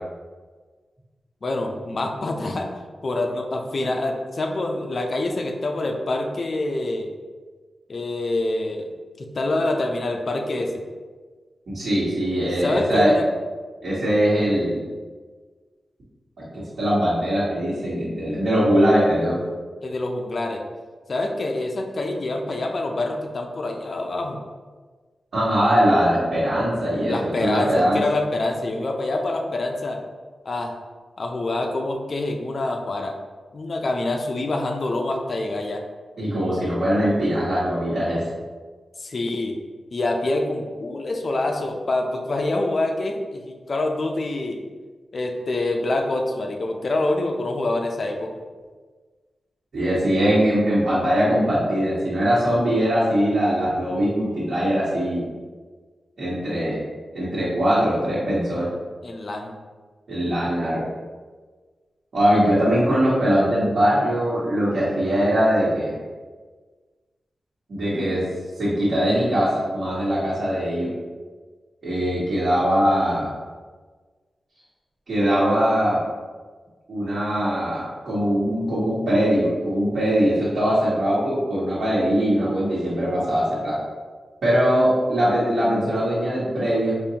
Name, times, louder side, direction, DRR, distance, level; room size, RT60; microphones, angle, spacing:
voice 1, 1.4-2.7 3.0-7.1 7.9-8.9 9.2-10.8 12.6-13.2 19.8-20.6 21.1-24.4 27.1-30.0 30.5-30.8 31.2-33.1 33.5-35.8 39.0-39.6 39.9-44.6 45.1-48.3 59.0-59.5, left 2 dB, 50° left, 3 dB, 0.5 m, -26 dB
voice 2, 11.7-13.1 13.8-14.8 16.4-19.4 25.3-28.0 36.2-38.2 49.7-55.2 56.2-56.8 57.1-58.7 60.1-60.8 62.1-66.0 67.7-68.2 68.6-70.9 71.8-73.3 75.1-76.0 76.9-83.7 84.4-87.1, equal, 65° right, -11 dB, 1.4 m, -21 dB
5.1 x 2.5 x 2.8 m, 1.4 s
wide cardioid pair, 95°, 0 cm